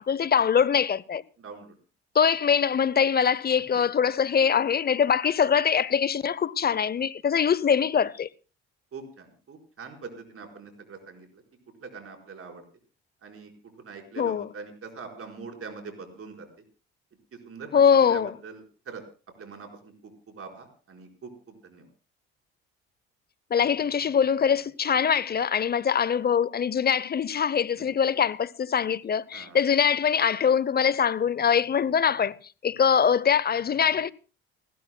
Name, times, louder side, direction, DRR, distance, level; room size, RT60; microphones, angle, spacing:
voice 1, 0.0-1.2 2.1-8.3 14.2-14.5 17.7-18.3 23.5-32.3 32.6-34.1, left 7 dB, 30° left, 0.7 m, -23 dB
voice 2, 1.4-1.7 3.7-3.8 8.9-11.4 11.8-12.6 13.2-13.5 13.8-16.5 17.3-19.0 19.4-21.9 27.8-27.9 29.3-29.6, right 4 dB, 45° right, 4.6 m, -43 dB
29.5 x 12.5 x 2.2 m
hypercardioid pair, 55°, 31 cm